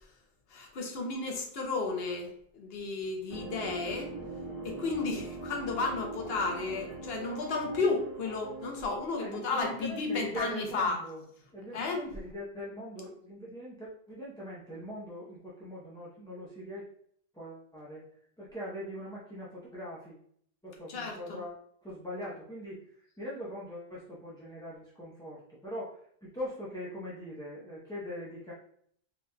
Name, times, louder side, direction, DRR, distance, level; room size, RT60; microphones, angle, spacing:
voice 1, 0.5-4.1 4.6-11.0 11.7-12.1 20.9-21.4, left 3 dB, 75° left, 2 dB, 1.0 m, -33 dB
sound 1, 3.3-9.0, right 3 dB, 40° right, 1.1 m, -41 dB
voice 2, 9.2-11.2 11.5-16.8 17.3-18.0 18.4-20.2 20.6-28.5, left 1 dB, 5° left, -8 dB, 0.6 m, -42 dB
4.0 x 2.8 x 2.2 m, 0.65 s
omnidirectional pair, 1.0 m